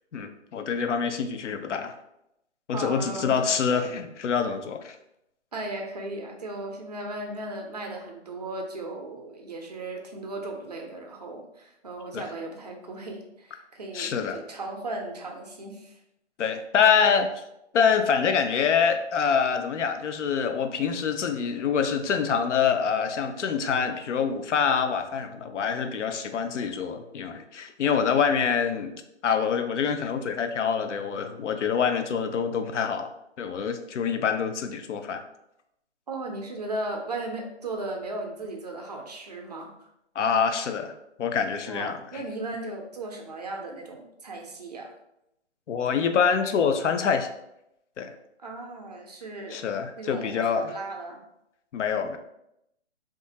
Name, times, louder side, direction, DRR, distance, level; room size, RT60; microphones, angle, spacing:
voice 1, 0.1-1.9 2.7-5.0 12.1-12.2 13.9-14.4 16.4-17.3 17.7-28.9 29.2-33.1 33.4-35.2 40.2-42.2 45.7-47.3 48.0-48.1 49.5-50.7 51.7-52.2, left 6 dB, 80° left, 7 dB, 0.5 m, -25 dB
voice 2, 2.7-3.4 5.5-16.0 36.1-39.7 41.7-44.9 48.4-49.6 50.0-51.2, right 2 dB, 35° right, 2 dB, 0.4 m, -36 dB
2.8 x 2.4 x 2.7 m, 0.83 s
hypercardioid pair, 160°, 35 cm